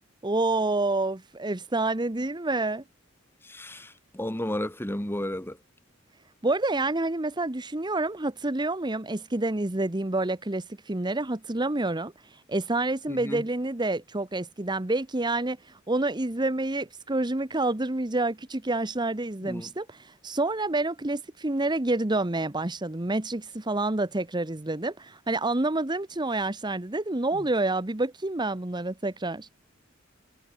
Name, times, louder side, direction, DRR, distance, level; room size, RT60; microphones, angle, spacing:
voice 1, 0.2-2.8 6.4-29.5, right 2 dB, 20° right, 1.1 m, -28 dB
voice 2, 3.4-5.6 13.1-13.4 19.4-19.7, left 1 dB, 10° left, 1.9 m, -33 dB
head